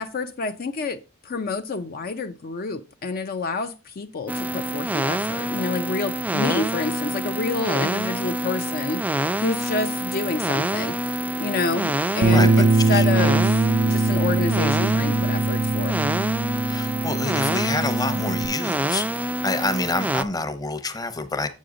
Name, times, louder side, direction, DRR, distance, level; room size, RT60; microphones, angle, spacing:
voice 1, 0.0-16.0, left 4 dB, 45° left, 0.5 m, -28 dB
sound 1, 4.3-20.2, right 1 dB, 10° right, 0.3 m, -27 dB
Bass guitar, 12.2-18.5, right 3 dB, 90° right, 0.5 m, -22 dB
voice 2, 12.3-13.1 16.6-21.5, left 3 dB, 20° left, 0.8 m, -27 dB
7.7 x 6.4 x 3.7 m
head